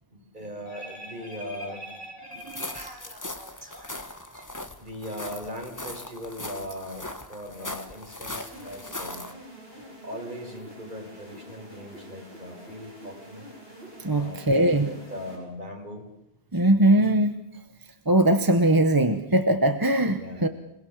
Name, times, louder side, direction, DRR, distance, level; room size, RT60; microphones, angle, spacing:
voice 1, 0.1-4.5 4.8-9.3 10.0-13.5 14.1-16.1 20.1-20.5, equal, 45° right, 2 dB, 4.8 m, -39 dB
sound 1, 2.4-9.3, left 2 dB, 15° left, 1.4 m, -39 dB
sound 2, 8.4-15.4, right 1 dB, 65° right, 7.5 m, -46 dB
voice 2, 14.0-14.9 16.5-17.4 18.1-20.5, right 1 dB, 20° right, 8 dB, 1.0 m, -20 dB
26.5 x 20.0 x 7.4 m, 0.82 s
omnidirectional pair, 1.1 m